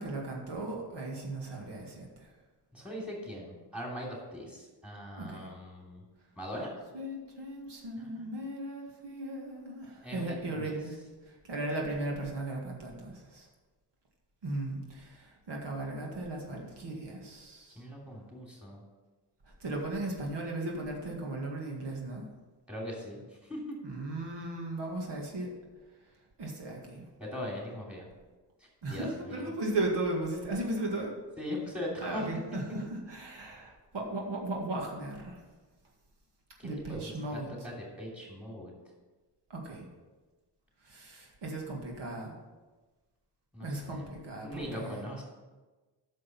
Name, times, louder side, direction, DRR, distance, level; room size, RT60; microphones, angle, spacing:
voice 1, 0.0-2.3 5.2-5.5 6.9-11.0 11.2-13.5 14.4-17.8 19.6-22.3 23.8-25.5 26.4-27.0 28.8-31.1 32.0-35.4 36.6-37.5 39.5-39.8 40.8-42.3 43.6-45.0, right 2 dB, 80° right, -1 dB, 2.1 m, -36 dB
voice 2, 2.7-6.0 6.4-6.7 8.0-8.3 10.0-10.7 17.8-18.8 22.7-23.6 27.2-28.1 28.6-29.5 31.4-32.3 36.6-37.1 37.6-38.7 43.5-44.1 44.4-45.2, left 1 dB, 5° right, -3 dB, 2.9 m, -40 dB
9.7 x 6.5 x 6.0 m, 1.3 s
wide cardioid pair, 145°, 42 cm